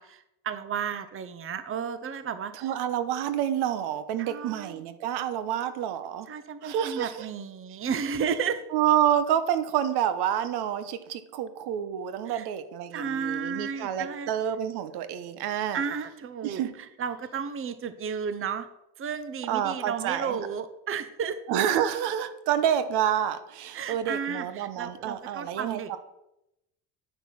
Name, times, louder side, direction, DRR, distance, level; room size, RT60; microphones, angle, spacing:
voice 1, 0.0-2.7 4.2-4.8 6.3-8.6 12.3-12.5 12.9-14.3 15.7-18.7 19.0-21.4 23.7-26.0, right 6 dB, 35° right, 12 dB, 0.8 m, -33 dB
voice 2, 2.6-6.3 6.6-7.2 8.7-15.8 16.4-16.7 19.5-20.4 21.5-26.0, right 10 dB, 80° right, 11 dB, 1.1 m, -28 dB
9.4 x 6.1 x 5.9 m, 0.86 s
cardioid pair, 105°, 39 cm